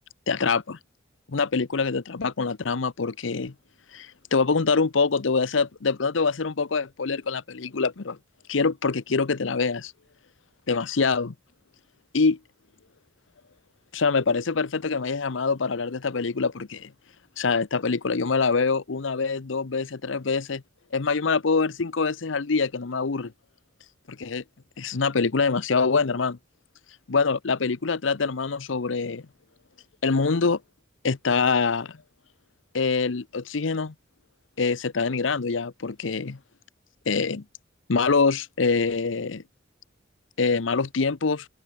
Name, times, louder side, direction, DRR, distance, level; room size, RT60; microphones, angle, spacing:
voice 1, 0.3-0.8 1.3-3.5 3.9-8.2 8.5-9.9 10.7-11.3 12.1-12.4 13.9-16.9 17.4-20.6 20.9-23.3 24.1-24.4 24.8-26.4 27.1-29.2 30.0-30.6 31.0-32.0 32.7-33.9 34.6-36.4 37.1-37.4 37.9-39.4 40.4-41.5, left 4 dB, 80° left, 0.8 m, -25 dB
open air
head